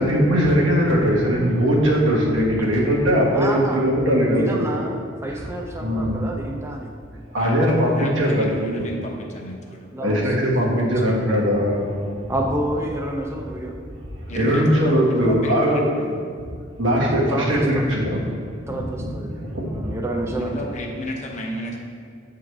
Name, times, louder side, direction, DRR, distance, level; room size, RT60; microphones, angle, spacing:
voice 1, 0.0-4.8 5.3-5.4 5.8-6.2 7.3-8.8 10.0-12.1 14.2-15.9 16.8-18.2 18.7-19.1 19.4-19.8, equal, 90° right, -4 dB, 1.4 m, -20 dB
voice 2, 3.3-3.8 4.3-6.9 9.9-11.2 12.3-13.8 17.0-17.8 18.7-20.7, right 1 dB, 15° right, 0 dB, 0.4 m, -29 dB
voice 3, 7.3-9.9 14.3-16.2 20.3-21.8, equal, 40° left, 0 dB, 0.8 m, -32 dB
7.7 x 3.8 x 4.7 m, 2.2 s
head